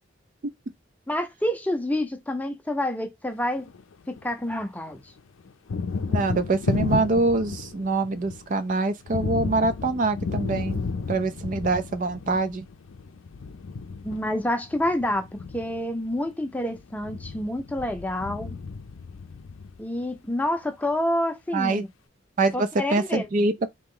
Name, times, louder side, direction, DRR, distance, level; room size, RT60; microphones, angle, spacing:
voice 1, 1.1-3.7 4.1-5.0 14.0-15.3 15.5-18.6 19.8-21.9 22.5-23.3, left 1 dB, 10° left, 0.6 m, -28 dB
Thunder, 3.4-4.6 4.9-20.2, left 4 dB, 90° left, 0.5 m, -33 dB
voice 2, 6.1-10.8 11.1-12.7 21.5-21.8 22.4-23.7, right 3 dB, 40° right, 0.4 m, -24 dB
3.8 x 3.0 x 3.8 m
head